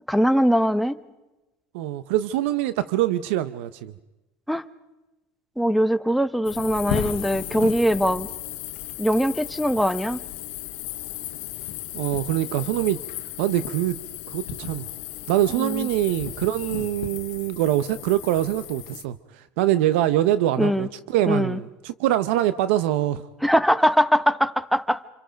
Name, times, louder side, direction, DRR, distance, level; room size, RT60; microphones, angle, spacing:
voice 1, 0.1-1.0 4.5-4.6 5.6-8.3 9.0-10.2 15.6-15.9 20.6-20.9 21.3-21.6 23.4-25.1, equal, ahead, 10 dB, 0.8 m, -21 dB
voice 2, 1.7-3.9 11.9-13.0 13.4-14.0 14.3-14.8 15.3-23.2, right 13 dB, 85° right, 14 dB, 0.7 m, -24 dB
sound 1, 6.4-19.0, left 13 dB, 85° left, 1.2 m, -35 dB
27.0 x 26.5 x 5.2 m, 1.1 s
supercardioid pair, 115°, 6 cm